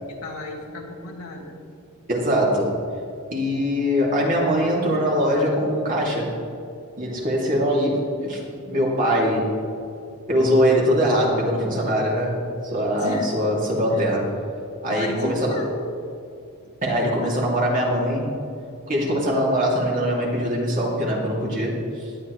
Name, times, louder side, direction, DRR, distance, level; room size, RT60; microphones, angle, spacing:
voice 1, 0.1-1.6 12.9-13.4 13.9-14.1 14.9-16.0, left 2 dB, 75° left, -1 dB, 2.0 m, -33 dB
voice 2, 2.1-2.7 3.3-6.3 7.0-9.5 10.3-12.4 12.6-14.3 14.8-15.6 16.8-18.3 18.9-21.8, equal, 40° right, -3 dB, 2.9 m, -22 dB
17.5 x 11.5 x 3.3 m, 2.6 s
head